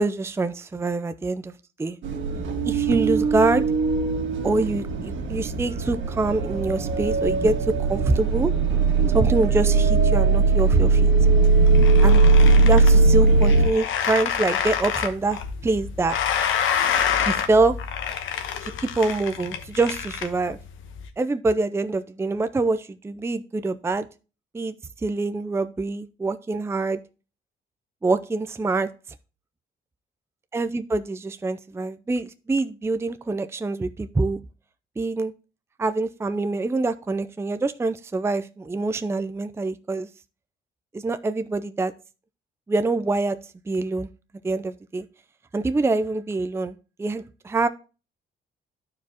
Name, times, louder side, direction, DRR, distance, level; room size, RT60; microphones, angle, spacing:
voice 1, 0.0-1.5 1.8-2.0 2.6-3.6 4.4-8.5 9.1-11.1 12.0-12.2 12.6-16.1 17.3-17.8 18.6-20.6 21.2-24.1 24.5-24.7 25.0-27.0 28.0-28.9 30.5-34.4 35.0-35.3 35.8-40.1 40.9-41.9 42.7-43.4 43.7-44.1 44.4-45.1 45.5-47.7, right 3 dB, 15° right, 11 dB, 0.5 m, -25 dB
sound 1, 2.0-13.7, right 3 dB, 70° right, 1.7 m, -19 dB
sound 2, 11.5-21.1, left 8 dB, 80° left, 1.1 m, -28 dB
12.0 x 4.8 x 2.9 m, 0.33 s
cardioid pair, 90°, 20 cm